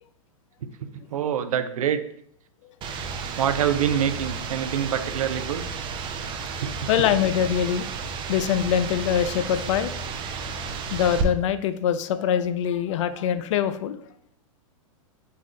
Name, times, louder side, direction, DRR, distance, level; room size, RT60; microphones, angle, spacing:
voice 1, 0.6-2.0 3.4-5.7 6.6-6.7 7.0-7.1, right 9 dB, 80° right, 10 dB, 0.5 m, -26 dB
sound 1, 2.8-11.2, right 5 dB, 30° right, 0.5 m, -32 dB
voice 2, 6.9-7.8 8.3-9.9 10.6-14.0, left 9 dB, 60° left, 12 dB, 0.4 m, -24 dB
5.5 x 2.4 x 3.1 m, 0.70 s
hypercardioid pair, 110°, 18 cm